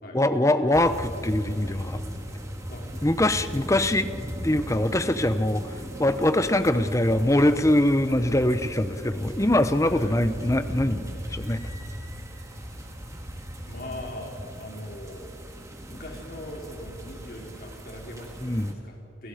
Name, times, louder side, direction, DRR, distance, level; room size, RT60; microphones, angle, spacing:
voice 1, 0.1-2.0 3.0-4.1 4.4-5.7 6.0-11.6 18.4-18.8, left 1 dB, 15° left, 11 dB, 0.9 m, -23 dB
sound 1, 0.7-18.7, equal, 15° right, 2.3 m, -38 dB
voice 2, 9.8-10.2 13.6-15.3 15.8-18.4 18.8-19.3, left 1 dB, 50° left, 0 dB, 4.7 m, -40 dB
29.5 x 29.0 x 5.1 m, 2.8 s
head